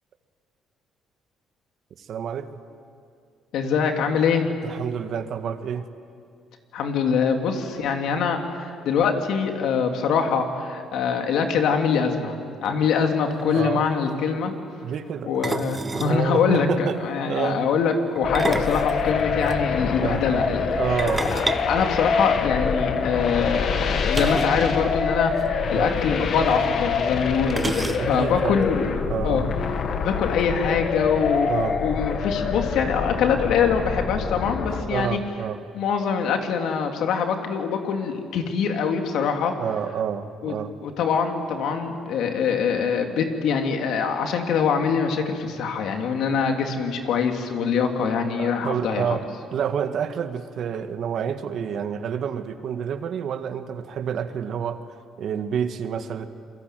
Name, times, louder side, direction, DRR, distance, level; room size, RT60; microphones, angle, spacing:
voice 1, 2.0-2.6 4.6-5.9 13.5-13.9 14.8-15.3 16.0-17.0 17.3-17.7 18.4-18.6 20.0-20.2 20.7-21.3 24.5-24.6 25.7-25.9 28.0-28.6 29.1-29.5 31.5-31.8 34.7-35.6 39.6-40.7 48.4-49.2 49.5-54.8 55.2-56.3, right 8 dB, 60° right, 8 dB, 1.8 m, -28 dB
voice 2, 3.5-4.5 6.7-14.5 15.2-28.9 29.2-29.5 30.0-31.5 31.8-35.2 35.7-39.5 40.4-40.5 40.8-49.2, left 6 dB, 75° left, 4 dB, 3.2 m, -24 dB
sound 1, 13.1-13.2 13.4-13.6 15.4-16.2 18.1-19.6 21.0-22.6 24.1-24.6 24.9-25.0 25.3-25.5 26.5-26.6 27.5-28.3, right 3 dB, 20° right, 0.9 m, -30 dB
sound 2, 18.2-34.8, left 5 dB, 55° left, 2.1 m, -26 dB
27.5 x 22.5 x 9.4 m, 2.3 s
cardioid pair, 105°, 0 cm